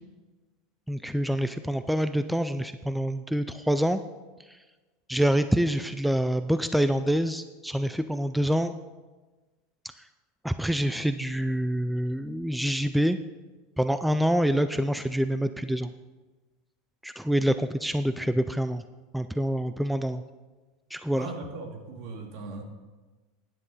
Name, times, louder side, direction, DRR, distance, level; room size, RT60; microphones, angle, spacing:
voice 1, 0.9-4.0 4.5-4.6 5.1-8.7 10.4-13.2 13.8-15.9 17.0-18.8 19.1-20.2 20.9-21.3, equal, ahead, 11 dB, 0.3 m, -26 dB
voice 2, 21.1-22.6, right 3 dB, 60° right, 2 dB, 2.3 m, -38 dB
13.0 x 10.0 x 4.1 m, 1.2 s
supercardioid pair, 140°, 0 cm